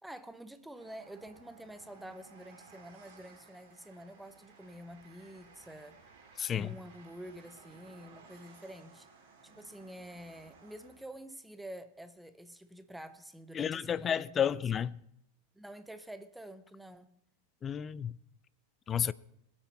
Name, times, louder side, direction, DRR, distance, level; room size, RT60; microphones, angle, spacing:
voice 1, 0.0-6.0 6.5-9.1 9.4-14.6 15.5-17.2, right 1 dB, 5° right, 0.9 m, -48 dB
Train, 0.7-11.2, right 5 dB, 50° right, 2.8 m, -58 dB
voice 2, 6.4-6.8 13.5-15.0 17.6-18.2 18.9-19.1, left 8 dB, 25° left, 0.4 m, -31 dB
21.5 x 8.9 x 4.3 m
figure-of-eight pair, 90°, 0 cm